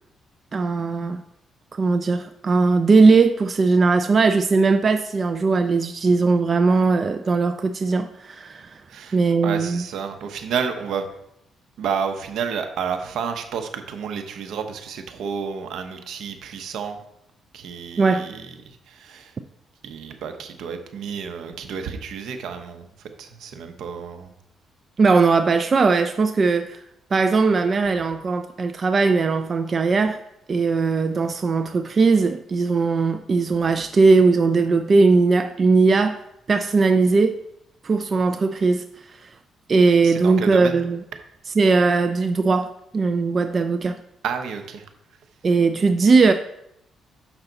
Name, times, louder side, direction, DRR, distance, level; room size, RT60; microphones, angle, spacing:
voice 1, 0.5-1.2 1.8-8.8 9.1-9.8 18.0-18.3 25.0-26.8 27.1-30.2 30.5-36.2 36.5-37.4 37.8-38.8 39.2-39.3 39.7-41.0 41.6-44.0 45.4-46.3, right 4 dB, 40° right, 8 dB, 0.4 m, -19 dB
voice 2, 9.4-11.1 11.8-17.0 17.5-19.3 19.8-24.3 40.0-40.8 44.2-44.9, right 6 dB, 75° right, 7 dB, 0.9 m, -30 dB
6.9 x 5.9 x 3.9 m, 0.80 s
cardioid pair, 90°, 0 cm